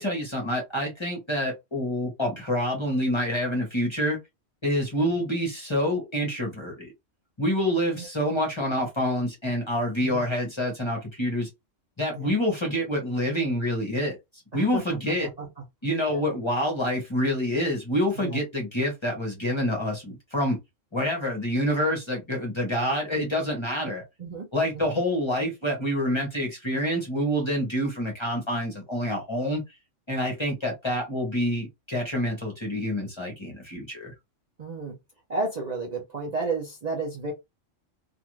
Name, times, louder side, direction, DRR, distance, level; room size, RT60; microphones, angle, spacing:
voice 1, 0.0-4.2 4.6-6.9 7.4-11.5 12.0-14.1 14.5-15.3 15.8-20.6 20.9-24.0 24.5-29.6 30.1-34.1, equal, 25° left, 0.8 m, -27 dB
voice 2, 7.9-8.5 10.0-10.3 12.1-12.3 14.5-15.5 16.1-16.2 18.2-18.4 23.8-23.9 24.2-24.5 24.7-24.9 34.6-35.0 35.3-37.3, right 3 dB, 40° right, 0.6 m, -33 dB
2.5 x 2.5 x 3.0 m
omnidirectional pair, 1.3 m